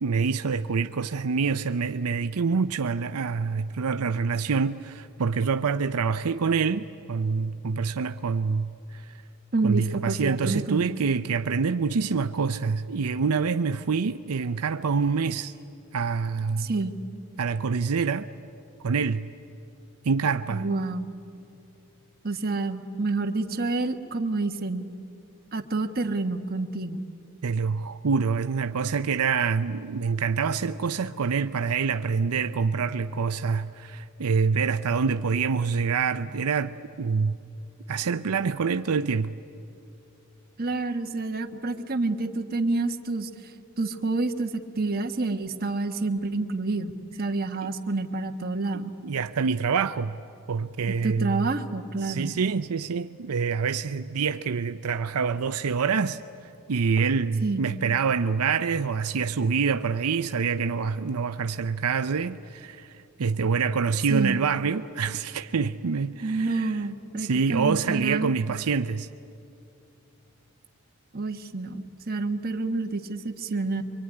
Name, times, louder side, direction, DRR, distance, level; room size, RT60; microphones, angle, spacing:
voice 1, 0.0-9.0 9.6-15.5 15.9-16.7 17.4-18.3 18.8-19.3 20.0-20.7 27.4-37.4 37.9-39.3 47.6-47.7 48.7-50.2 50.5-51.5 52.0-56.2 56.7-62.9 63.2-66.8 67.2-69.1, right 5 dB, 80° right, 0.6 m, -26 dB
voice 2, 9.5-10.8 16.6-16.9 20.5-21.1 22.2-24.8 25.5-27.0 40.6-43.3 43.8-46.9 47.2-48.9 51.0-52.3 57.4-57.7 64.1-64.4 66.2-68.3 71.1-73.8, right 3 dB, 40° right, 1.3 m, -28 dB
25.0 x 24.0 x 9.8 m
head